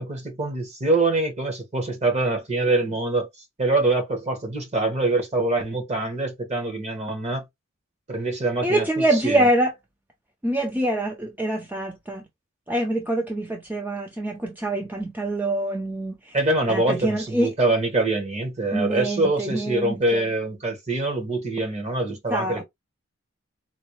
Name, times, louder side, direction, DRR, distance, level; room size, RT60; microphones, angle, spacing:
voice 1, 0.0-3.3 3.6-7.4 8.1-9.5 16.3-22.6, right 2 dB, 35° right, 1.2 m, -24 dB
voice 2, 8.6-9.7 10.4-12.2 12.7-16.4 16.7-17.5 18.7-20.2 22.3-22.6, right 1 dB, 10° right, 0.5 m, -25 dB
4.0 x 2.2 x 3.0 m
head